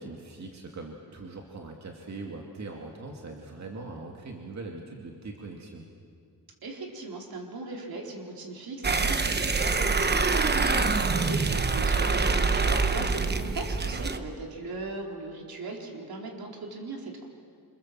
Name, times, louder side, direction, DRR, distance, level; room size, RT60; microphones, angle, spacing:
voice 1, 0.0-5.8 11.8-12.1, right 3 dB, 50° right, 1 dB, 2.4 m, -41 dB
voice 2, 6.6-17.3, right 2 dB, 75° right, 1 dB, 4.1 m, -38 dB
sound 1, 8.8-14.2, right 4 dB, 30° right, 1.0 m, -25 dB
28.0 x 26.0 x 7.5 m, 2.2 s
wide cardioid pair, 155°, 36 cm